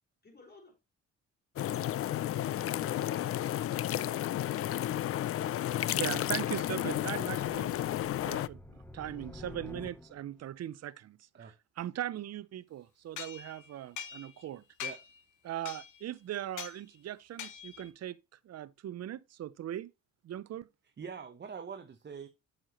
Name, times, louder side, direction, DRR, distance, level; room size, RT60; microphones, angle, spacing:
voice 1, 0.2-0.8, left 3 dB, 35° left, 4.7 m, -57 dB
sound 1, 1.6-8.5, left 12 dB, 50° left, 0.4 m, -32 dB
sound 2, 5.9-10.5, left 2 dB, 5° left, 0.9 m, -51 dB
voice 2, 5.9-7.7 8.3-8.6 8.9-11.2 11.8-14.6 15.4-18.2 18.5-19.9 20.2-20.7, right 12 dB, 55° right, 0.7 m, -39 dB
sound 3, 13.2-14.5 14.8-15.2 15.7-16.1 16.6-16.8 17.4-17.9, left 8 dB, 75° left, 1.3 m, -43 dB
voice 3, 20.8-22.3, right 6 dB, 35° right, 1.0 m, -44 dB
8.7 x 6.6 x 3.0 m
cardioid pair, 90°, 30 cm